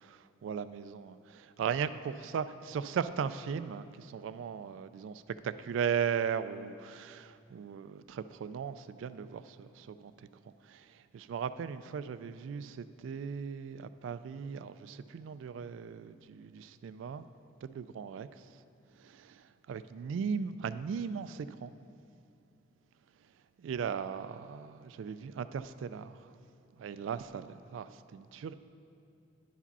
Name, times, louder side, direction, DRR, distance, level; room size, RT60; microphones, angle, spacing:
voice 1, 0.0-10.3 10.7-10.9 11.1-17.3 17.6-18.3 19.0-19.4 19.7-21.7 23.6-26.2 26.8-28.5, right 7 dB, 85° right, 14 dB, 0.3 m, -37 dB
10.0 x 4.9 x 5.4 m, 2.5 s
head